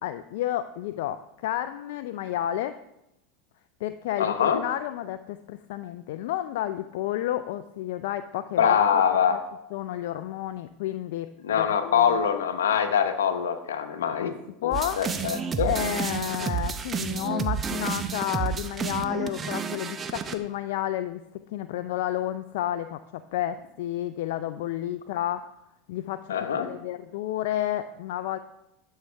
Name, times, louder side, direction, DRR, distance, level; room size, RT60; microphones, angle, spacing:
voice 1, 0.0-2.8 3.8-8.8 9.3-9.4 9.7-12.1 14.1-14.3 14.6-15.0 15.6-21.2 21.5-25.5 25.9-28.4, left 12 dB, 70° left, 10 dB, 0.4 m, -31 dB
voice 2, 4.2-4.6 8.6-9.4 11.4-14.3 14.6-15.7 26.3-26.7, left 8 dB, 90° left, 8 dB, 0.9 m, -24 dB
sound 1, 14.7-20.3, right 6 dB, 25° right, 0.7 m, -30 dB
11.0 x 6.5 x 3.4 m, 0.88 s
hypercardioid pair, 100°, 0 cm